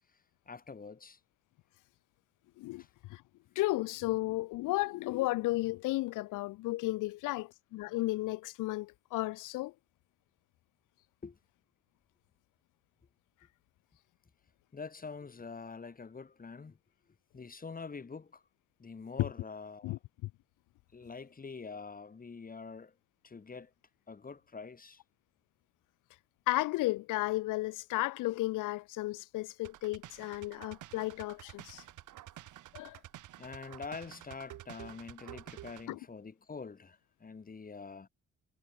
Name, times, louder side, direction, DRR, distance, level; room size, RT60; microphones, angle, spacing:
voice 1, 0.5-1.2 2.8-2.9 11.2-11.4 14.7-16.8 17.3-18.4 18.8-20.0 20.9-22.9 23.2-23.7 24.1-25.0 33.4-38.1, left 4 dB, 30° left, 2.2 m, -45 dB
voice 2, 3.6-9.7 19.2-19.3 19.8-20.3 26.5-31.8 32.7-33.0 35.9-36.0, left 19 dB, 90° left, 0.7 m, -33 dB
sound 1, 29.6-35.9, right 14 dB, 80° right, 3.9 m, -50 dB
cardioid pair, 90°, 30 cm